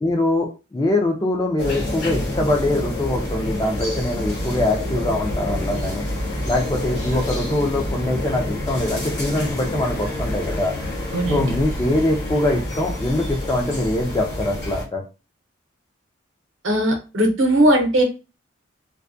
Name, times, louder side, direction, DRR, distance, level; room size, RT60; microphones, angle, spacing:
voice 1, 0.0-6.0 6.5-10.7 11.3-15.0, left 1 dB, 20° left, 2 dB, 0.4 m, -23 dB
sound 1, 1.6-14.8, left 1 dB, 50° left, 0.9 m, -27 dB
voice 2, 11.1-11.6 16.6-18.0, right 1 dB, 75° right, 3 dB, 0.7 m, -18 dB
2.3 x 2.1 x 2.6 m, 0.31 s
head